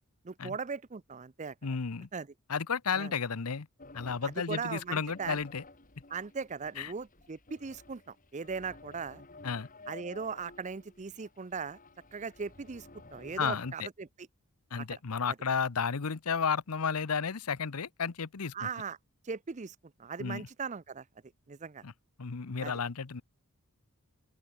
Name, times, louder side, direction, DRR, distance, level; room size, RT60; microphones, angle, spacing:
voice 1, 0.2-1.5 2.1-2.3 2.9-3.1 4.2-5.4 6.1-9.2 9.9-11.8 12.1-14.1 15.3-15.4 18.5-19.0 19.2-21.0 21.5-21.8 22.6-22.7, right 5 dB, 35° right, 0.5 m, -39 dB
voice 2, 1.6-2.1 2.5-3.7 3.9-5.6 6.8-6.9 9.4-9.7 13.4-13.9 14.7-18.7 20.2-20.5 21.8-21.9 22.2-23.2, left 6 dB, 85° left, 0.9 m, -32 dB
sound 1, 3.8-13.7, left 2 dB, 40° left, 3.3 m, -54 dB
open air
head